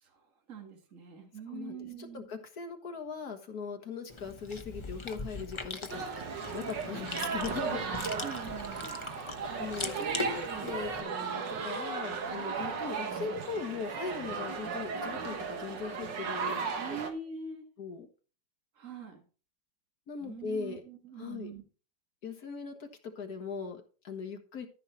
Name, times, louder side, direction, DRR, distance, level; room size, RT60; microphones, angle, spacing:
voice 1, 0.5-2.3 8.2-9.1 16.8-17.6 18.8-19.2 20.2-21.6, right 5 dB, 40° right, 3 dB, 2.3 m, -43 dB
voice 2, 1.5-7.9 9.1-9.3 9.6-16.7 17.8-18.1 20.1-20.8 21.2-21.5 22.2-24.7, left 5 dB, 50° left, 5 dB, 2.0 m, -40 dB
Chewing mastication, 4.1-11.0, left 3 dB, 35° left, 0.4 m, -41 dB
sound 1, 5.9-17.1, right 5 dB, 65° right, 2.0 m, -36 dB
14.0 x 5.9 x 4.4 m, 0.36 s
omnidirectional pair, 2.1 m